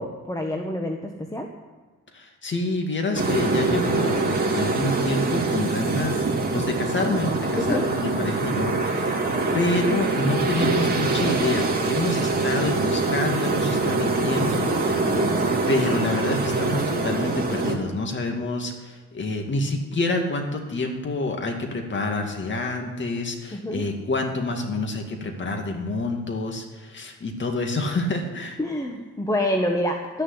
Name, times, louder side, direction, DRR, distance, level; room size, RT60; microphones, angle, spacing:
voice 1, 0.0-1.5 7.6-7.9 15.0-15.3 23.5-23.8 28.6-30.2, left 1 dB, 10° left, 3 dB, 1.2 m, -27 dB
voice 2, 2.1-6.2 6.5-9.2 9.5-15.1 15.7-28.6, left 2 dB, 40° left, 3 dB, 2.3 m, -27 dB
sound 1, 3.1-17.7, right 3 dB, 30° right, 3.0 m, -24 dB
13.0 x 6.8 x 9.7 m, 1.4 s
cardioid pair, 90°, 30 cm